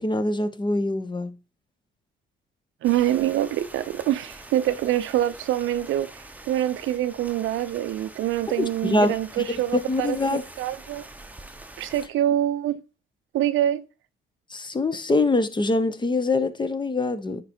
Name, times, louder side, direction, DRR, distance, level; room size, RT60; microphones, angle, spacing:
voice 1, 0.0-1.3 8.6-9.2 9.7-10.4 14.5-17.4, left 2 dB, 25° left, 0.9 m, -24 dB
sound 1, 2.8-12.1, right 2 dB, 10° right, 0.9 m, -45 dB
voice 2, 2.8-10.2 10.6-11.0 11.8-12.8 13.3-13.8, right 12 dB, 80° right, 0.6 m, -25 dB
9.7 x 4.7 x 4.3 m
cardioid pair, 90°, 20 cm